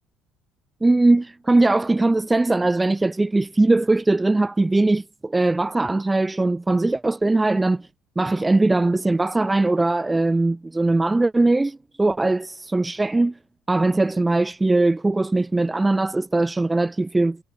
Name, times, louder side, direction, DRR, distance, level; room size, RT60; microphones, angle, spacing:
voice 1, 0.8-7.9 8.2-13.4 13.7-17.4, right 2 dB, 15° right, 4.5 m, -20 dB
figure-of-eight pair, 55°, 0 cm